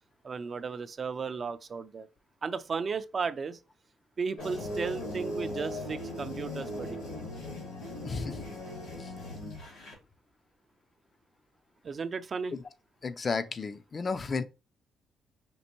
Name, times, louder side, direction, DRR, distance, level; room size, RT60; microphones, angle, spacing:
voice 1, 0.2-2.1 2.4-3.6 4.2-7.0 11.8-12.6, right 5 dB, 40° right, 0.4 m, -35 dB
sound 1, 4.4-9.9, left 1 dB, 90° left, 2.4 m, -38 dB
voice 2, 8.0-8.4 9.0-9.1 12.5-12.6 13.0-14.4, left 4 dB, 40° left, 0.4 m, -33 dB
5.3 x 2.6 x 2.9 m
cardioid pair, 90°, 0 cm